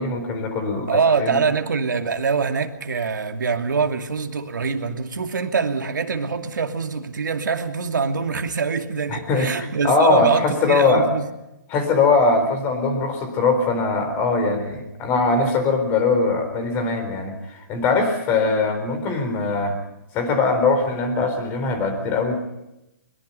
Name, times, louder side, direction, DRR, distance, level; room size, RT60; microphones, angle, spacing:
voice 1, 0.0-1.4 9.1-11.0 11.7-17.4 17.7-19.8 20.1-22.3, left 3 dB, 20° left, 4.1 m, -21 dB
voice 2, 0.9-11.2, right 5 dB, 80° right, 2.6 m, -24 dB
22.5 x 22.0 x 5.6 m
hypercardioid pair, 160°, 10 cm